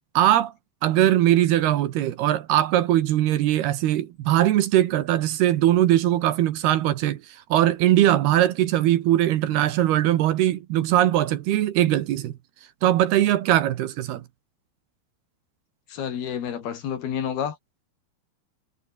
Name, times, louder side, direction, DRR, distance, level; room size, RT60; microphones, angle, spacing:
voice 1, 0.1-0.5 0.8-7.2 7.5-12.3 12.8-14.2, right 13 dB, 70° right, 3.0 m, -20 dB
voice 2, 15.9-17.6, left 8 dB, 60° left, 4.3 m, -29 dB
omnidirectional pair, 5.1 m